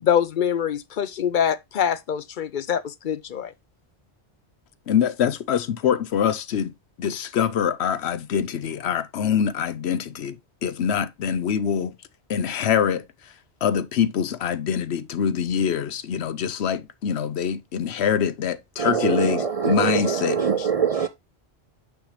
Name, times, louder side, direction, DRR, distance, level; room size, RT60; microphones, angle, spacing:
voice 1, 0.0-3.5, left 8 dB, 55° left, 0.7 m, -24 dB
voice 2, 4.9-6.7 7.0-11.9 12.3-13.0 13.6-20.7, left 8 dB, 80° left, 1.0 m, -24 dB
voice 3, 18.8-21.1, right 6 dB, 55° right, 0.4 m, -23 dB
6.5 x 6.4 x 3.2 m
omnidirectional pair, 1.1 m